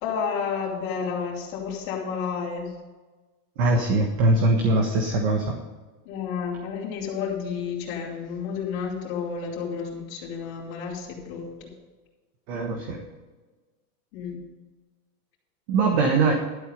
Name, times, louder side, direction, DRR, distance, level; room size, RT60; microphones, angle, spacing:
voice 1, 0.0-2.7 6.1-11.7 14.1-14.4, left 6 dB, 40° left, -5 dB, 3.3 m, -31 dB
voice 2, 3.6-5.6 12.5-13.0 15.7-16.3, right 2 dB, 40° right, 3 dB, 1.4 m, -21 dB
12.0 x 8.2 x 5.3 m, 1.3 s
supercardioid pair, 180°, 46 cm